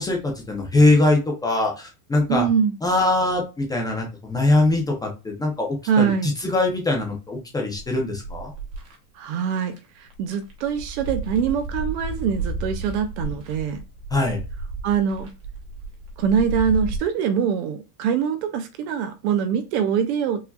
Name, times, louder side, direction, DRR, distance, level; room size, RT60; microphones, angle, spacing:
voice 1, 0.0-2.5 2.8-8.5 14.1-14.4, left 2 dB, 10° left, 0.5 m, -22 dB
voice 2, 2.3-2.7 5.9-6.3 9.2-13.8 14.8-15.3 16.2-20.4, right 7 dB, 45° right, 0.5 m, -23 dB
sound 1, 7.8-8.9 9.6-9.8 10.1-17.0, right 2 dB, 30° right, 1.1 m, -32 dB
4.7 x 2.7 x 2.2 m
supercardioid pair, 140°, 48 cm